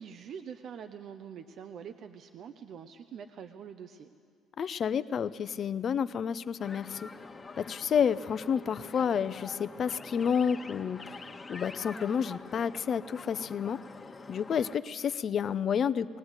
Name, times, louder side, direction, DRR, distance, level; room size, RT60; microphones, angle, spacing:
voice 1, 0.0-4.1, right 7 dB, 60° right, 8 dB, 0.8 m, -45 dB
voice 2, 4.6-7.1 7.6-11.2 11.5-13.8 14.3-16.2, left 7 dB, 50° left, 15 dB, 0.7 m, -30 dB
sound 1, 6.6-14.7, left 3 dB, 25° left, 1.4 m, -46 dB
20.5 x 19.0 x 8.1 m, 2.3 s
supercardioid pair, 70°, 0 cm